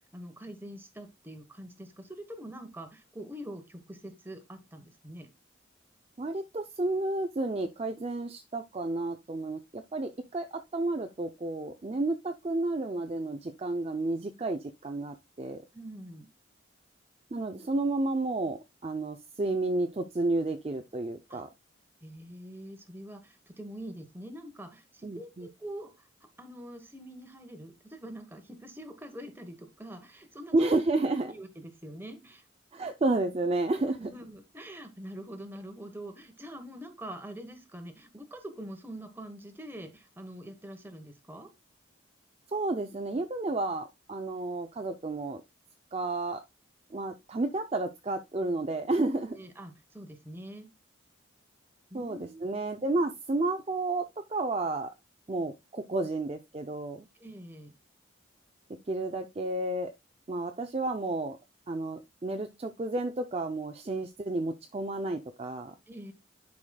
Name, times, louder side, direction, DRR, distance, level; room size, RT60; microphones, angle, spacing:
voice 1, 0.1-5.3 15.7-16.3 21.3-21.4 22.0-26.1 26.4-30.5 31.3-32.4 34.0-41.5 49.3-50.7 51.9-52.4 57.1-57.7 65.9-66.1, right 1 dB, 10° right, 1.0 m, -44 dB
voice 2, 6.2-15.6 17.3-21.5 25.0-25.5 30.5-31.3 32.7-34.1 42.5-45.4 45.9-46.4 46.9-49.4 51.9-54.0 54.3-54.9 55.3-57.1 58.9-59.9 60.3-61.4 61.7-65.7, right 2 dB, 30° right, 0.4 m, -31 dB
11.0 x 4.9 x 2.2 m
head